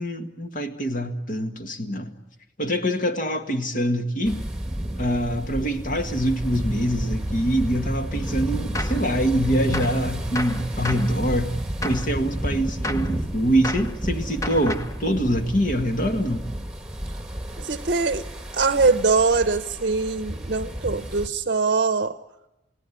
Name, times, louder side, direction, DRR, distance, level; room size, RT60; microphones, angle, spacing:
voice 1, 0.0-2.1 2.6-4.4 5.0-11.5 11.8-16.5, equal, 45° left, 7 dB, 1.9 m, -24 dB
sound 1, 4.2-21.3, right 1 dB, 5° right, 1.8 m, -31 dB
Gunshot gunfire, 8.7-9.1 9.7-10.0 10.3-11.1 11.8-12.1 12.8-13.1 13.6-13.9 14.4-15.0, left 1 dB, 15° left, 1.1 m, -31 dB
voice 2, 17.6-18.3 18.5-22.2, right 4 dB, 55° right, 11 dB, 0.8 m, -22 dB
29.0 x 17.0 x 9.9 m, 0.96 s
head